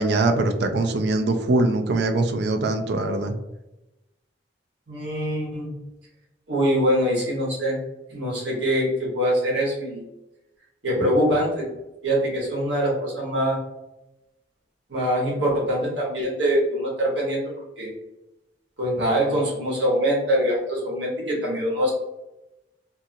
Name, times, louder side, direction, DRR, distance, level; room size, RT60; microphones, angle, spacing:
voice 1, 0.0-3.3, right 2 dB, 65° right, 6 dB, 0.4 m, -22 dB
voice 2, 4.9-5.7 6.5-7.8 8.1-10.0 10.8-11.7 12.0-13.6 14.9-17.9 18.8-21.9, equal, 90° right, -3 dB, 1.2 m, -23 dB
2.7 x 2.5 x 2.6 m, 0.96 s
head